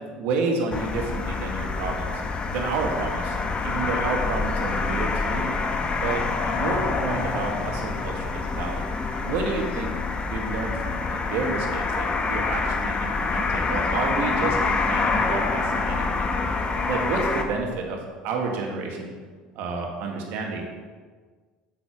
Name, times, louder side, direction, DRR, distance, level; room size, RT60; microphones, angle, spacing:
voice 1, 0.0-5.5 6.0-8.8 9.2-9.9 10.3-16.3 16.9-19.1 19.6-20.7, right 4 dB, 65° right, 1 dB, 1.9 m, -30 dB
sound 1, 0.7-17.4, left 4 dB, 30° left, 1.2 m, -26 dB
8.3 x 6.0 x 6.2 m, 1.5 s
hypercardioid pair, 75°, 4 cm